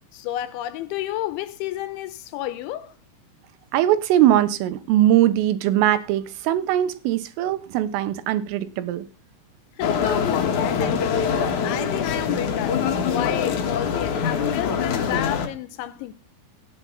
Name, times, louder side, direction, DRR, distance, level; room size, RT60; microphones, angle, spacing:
voice 1, 0.1-3.0 9.8-11.3 11.6-12.8 13.1-16.1, left 13 dB, 80° left, 3.0 m, -31 dB
voice 2, 3.7-9.1, right 12 dB, 85° right, 3.7 m, -21 dB
sound 1, 9.8-15.5, left 6 dB, 60° left, 2.1 m, -24 dB
15.5 x 9.8 x 4.0 m
omnidirectional pair, 5.8 m